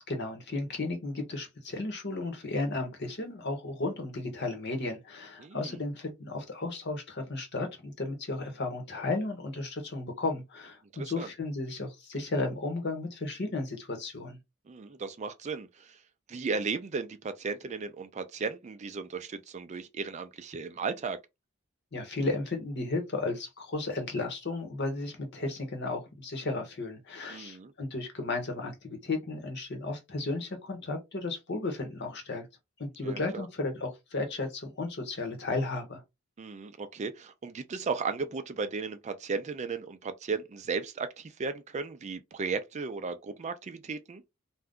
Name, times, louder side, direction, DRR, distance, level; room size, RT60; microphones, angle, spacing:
voice 1, 0.1-14.4 21.9-32.5 32.8-36.0, left 2 dB, 55° left, 1.0 m, -34 dB
voice 2, 5.4-5.8 10.9-11.3 14.7-16.0 16.3-21.2 27.3-27.7 33.0-33.5 36.4-44.2, right 4 dB, 35° right, 0.4 m, -35 dB
2.6 x 2.2 x 3.6 m
head